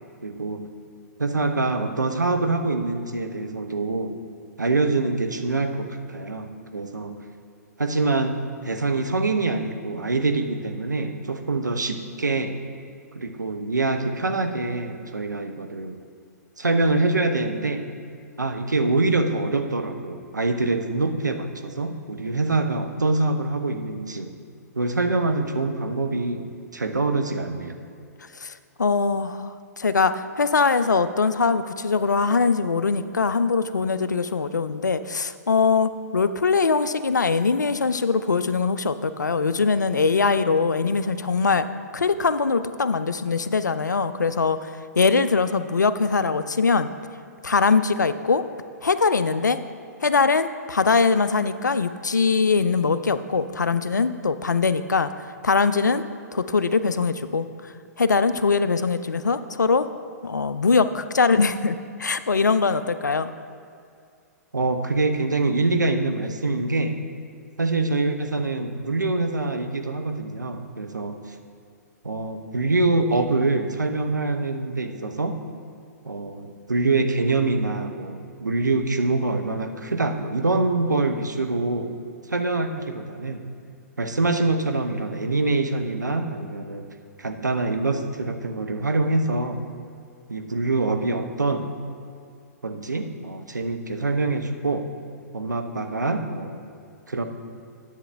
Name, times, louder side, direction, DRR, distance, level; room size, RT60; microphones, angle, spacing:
voice 1, 0.2-0.6 1.2-4.1 4.6-7.2 7.8-12.6 13.1-15.9 16.6-17.8 18.4-24.3 24.8-27.8 64.5-67.0 67.6-71.2 72.0-75.4 76.1-81.9 82.3-83.4 84.0-86.8 87.2-89.6 90.3-91.7 92.6-94.9 95.3-96.6 97.1-97.2, right 3 dB, 90° right, 6 dB, 0.7 m, -25 dB
voice 2, 28.8-41.7 41.9-44.7 45.0-46.9 47.4-48.4 48.8-49.6 50.0-55.1 55.4-56.0 56.3-59.9 60.2-63.3, left 4 dB, 90° left, 12 dB, 0.4 m, -22 dB
10.0 x 7.9 x 3.4 m, 2.4 s
figure-of-eight pair, 120°, 9 cm